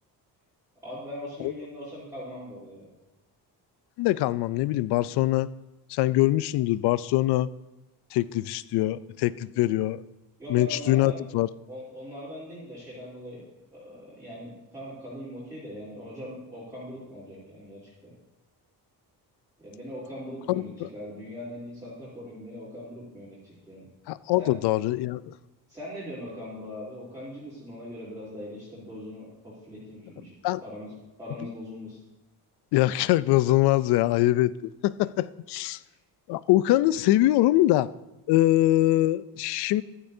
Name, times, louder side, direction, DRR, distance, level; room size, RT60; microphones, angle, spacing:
voice 1, 0.8-2.9 10.4-11.1 11.7-13.5 13.7-18.1 19.6-23.9 24.4-24.6 25.7-32.0 35.8-35.9, left 1 dB, 10° right, -10 dB, 3.2 m, -41 dB
voice 2, 4.0-5.5 5.9-7.5 8.1-10.0 10.5-11.5 20.5-20.9 24.1-25.3 30.4-30.6 32.7-34.5 34.8-35.8 36.3-37.9 38.3-39.8, left 15 dB, 75° left, 18 dB, 0.5 m, -23 dB
14.5 x 12.5 x 2.7 m, 1.0 s
cardioid pair, 170°, 40 cm